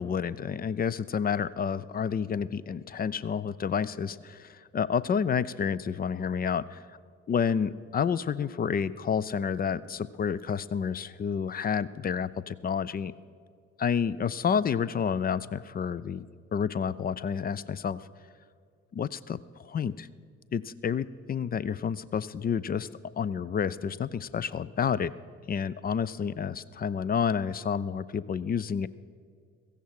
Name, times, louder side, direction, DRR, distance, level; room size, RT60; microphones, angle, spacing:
voice 1, 0.0-6.8 7.3-13.1 13.8-16.3 16.5-18.0 18.9-20.1 20.5-25.1 25.5-28.9, left 7 dB, 25° left, 18 dB, 0.4 m, -29 dB
16.5 x 14.5 x 4.7 m, 2.2 s
figure-of-eight pair, 45°, 38 cm